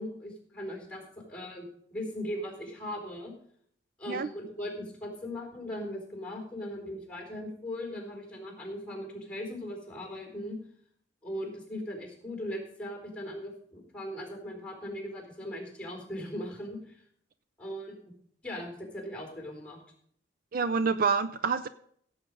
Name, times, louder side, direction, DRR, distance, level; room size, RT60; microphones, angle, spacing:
voice 1, 0.0-3.3 4.0-10.6 11.2-17.0 17.6-18.0 18.4-19.8, left 1 dB, 5° left, 2 dB, 3.8 m, -39 dB
voice 2, 20.5-21.7, right 5 dB, 50° right, 12 dB, 0.4 m, -27 dB
16.0 x 7.9 x 5.3 m, 0.64 s
head